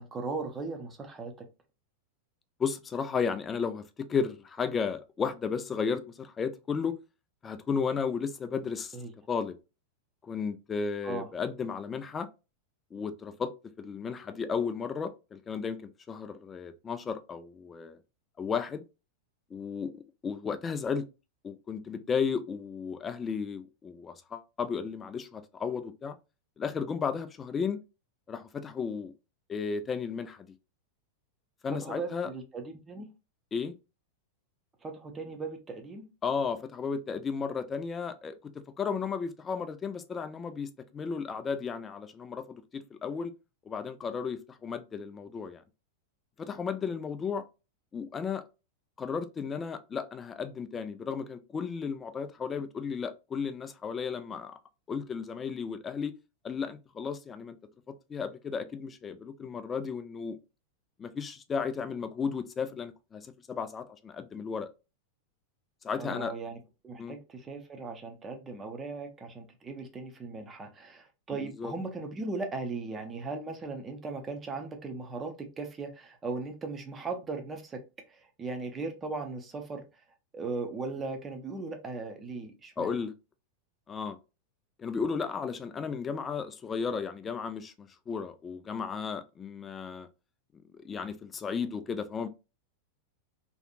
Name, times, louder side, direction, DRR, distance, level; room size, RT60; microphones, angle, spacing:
voice 1, 0.0-1.5 8.9-9.1 11.0-11.3 31.8-33.1 34.8-36.1 66.0-66.6 66.8-77.8 78.1-79.8 80.3-82.9, right 3 dB, 20° right, 0.6 m, -38 dB
voice 2, 2.6-7.0 7.4-9.0 9.3-9.6 10.2-12.3 12.9-13.5 13.8-18.0 18.4-18.8 19.5-21.1 21.4-26.2 26.6-27.8 28.3-29.1 29.5-30.5 31.6-32.3 33.5-33.7 36.2-43.3 43.7-45.6 46.4-47.4 47.9-48.4 49.0-54.6 54.9-56.1 56.4-57.5 57.9-60.4 61.0-64.7 65.8-66.3 67.0-67.2 71.3-71.7 82.8-83.1 83.9-84.2 84.8-90.1 90.8-92.3, left 6 dB, 20° left, 0.3 m, -34 dB
2.7 x 2.5 x 2.4 m
figure-of-eight pair, 90°, 0 cm